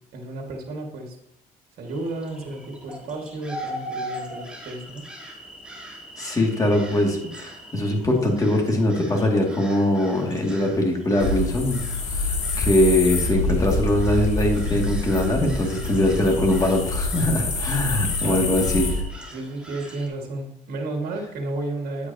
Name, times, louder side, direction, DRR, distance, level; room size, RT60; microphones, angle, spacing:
voice 1, 0.1-1.2 1.8-5.1 18.2-18.4 19.3-22.1, right 2 dB, 65° right, 2 dB, 2.0 m, -32 dB
sound 1, 1.9-20.1, right 1 dB, 5° right, 1.8 m, -41 dB
voice 2, 6.2-18.9, left 1 dB, 20° left, 0 dB, 2.3 m, -22 dB
sound 2, 11.2-19.0, left 2 dB, 40° left, 1.9 m, -26 dB
9.7 x 8.3 x 2.8 m, 0.77 s
cardioid pair, 110°, 17 cm